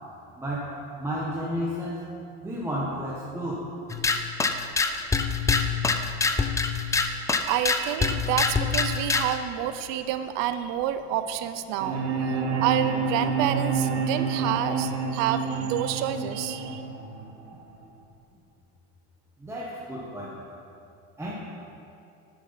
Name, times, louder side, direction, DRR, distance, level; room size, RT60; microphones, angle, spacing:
voice 1, 0.4-2.0 2.4-3.6 19.4-20.4 21.2-21.3, equal, 10° right, -6 dB, 1.2 m, -32 dB
sound 1, 3.9-9.4, left 4 dB, 10° left, 0.3 m, -25 dB
voice 2, 7.4-12.0 12.6-16.8, right 11 dB, 70° right, 11 dB, 0.6 m, -28 dB
sound 2, 11.8-17.8, right 5 dB, 85° right, 1.8 m, -28 dB
11.0 x 7.1 x 5.6 m, 2.7 s
cardioid pair, 140°, 34 cm